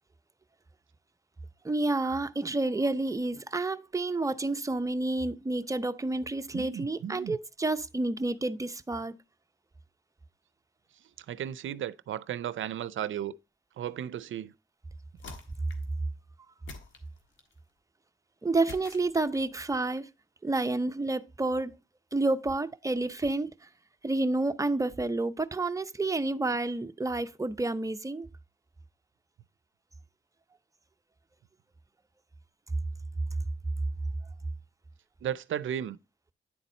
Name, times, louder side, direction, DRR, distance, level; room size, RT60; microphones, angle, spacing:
voice 1, 1.6-9.1 18.4-20.1 20.4-21.8 22.1-23.5 24.0-28.3, right 2 dB, 15° right, 0.6 m, -29 dB
voice 2, 6.5-7.4 11.2-13.4 13.8-14.5 35.2-36.0, right 10 dB, 75° right, 0.5 m, -35 dB
sound 1, 15.2-16.0 16.7-17.6 18.7-19.6, left 4 dB, 75° left, 1.5 m, -47 dB
9.8 x 4.1 x 4.2 m
cardioid pair, 60°, 20 cm